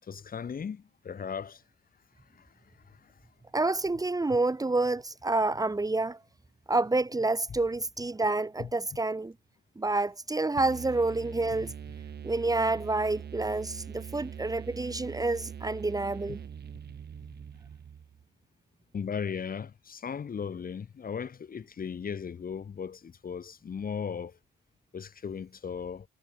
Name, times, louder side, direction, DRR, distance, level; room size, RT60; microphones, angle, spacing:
voice 1, 0.0-1.6 2.3-2.5 2.9-3.1 8.6-8.7 18.9-24.4 24.9-26.1, left 6 dB, 45° left, 5.6 m, -37 dB
voice 2, 3.5-6.2 6.7-9.3 9.8-11.7 12.2-16.4, right 2 dB, 20° right, 2.8 m, -28 dB
sound 1, 10.6-18.2, right 8 dB, 55° right, 6.0 m, -43 dB
cardioid pair, 90°, 20 cm